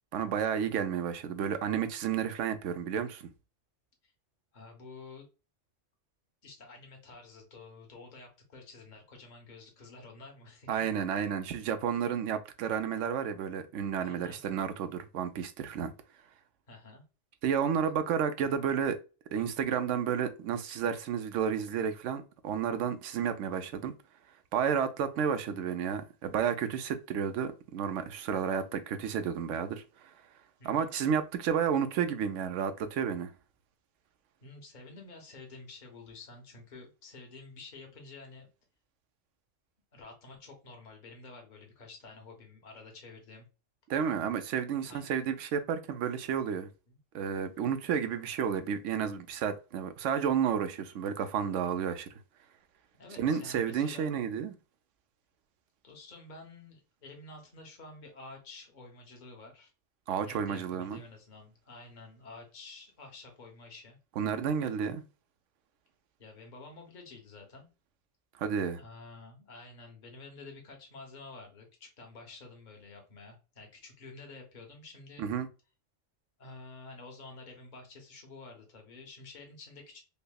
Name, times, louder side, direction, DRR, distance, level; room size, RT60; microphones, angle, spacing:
voice 1, 0.1-3.2 10.7-15.9 17.4-19.0 19.3-23.9 24.5-29.8 30.6-33.3 43.9-46.7 47.1-52.1 53.2-54.5 60.1-61.0 64.2-65.0 68.4-68.8 75.2-75.5, right 7 dB, 85° right, 0.9 m, -31 dB
voice 2, 4.5-5.3 6.4-10.8 14.0-14.4 16.7-17.0 30.6-30.9 34.4-38.5 39.9-43.5 44.8-45.1 46.9-47.0 53.0-54.1 55.8-59.7 60.2-64.0 66.2-67.7 68.8-75.3 76.4-80.0, left 3 dB, 40° left, 1.1 m, -50 dB
5.4 x 2.0 x 2.2 m
omnidirectional pair, 1.2 m